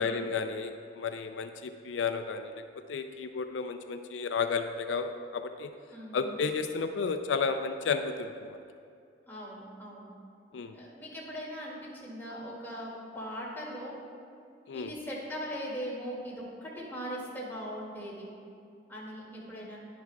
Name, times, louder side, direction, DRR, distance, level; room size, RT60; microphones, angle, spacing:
voice 1, 0.0-2.6 2.9-5.7 6.1-8.6 10.5-10.8 14.7-14.9, left 5 dB, 85° left, 8 dB, 0.4 m, -32 dB
voice 2, 5.9-6.4 9.3-10.1 10.7-14.0 14.7-18.3 18.9-19.8, equal, 10° left, -6 dB, 2.0 m, -40 dB
10.5 x 10.0 x 2.3 m, 2.5 s
head